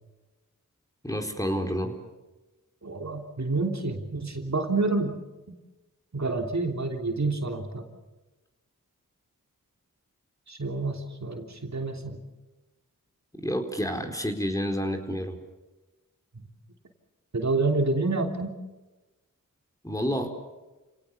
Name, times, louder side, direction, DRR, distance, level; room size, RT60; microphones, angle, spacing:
voice 1, 1.0-1.9 13.4-15.4 19.8-20.4, equal, 10° left, 4 dB, 4.2 m, -29 dB
voice 2, 2.8-5.2 6.1-7.9 10.5-12.2 16.3-16.4 17.3-18.5, right 3 dB, 55° right, 3 dB, 3.3 m, -28 dB
29.5 x 18.5 x 7.2 m, 1.1 s
cardioid pair, 50°, 34 cm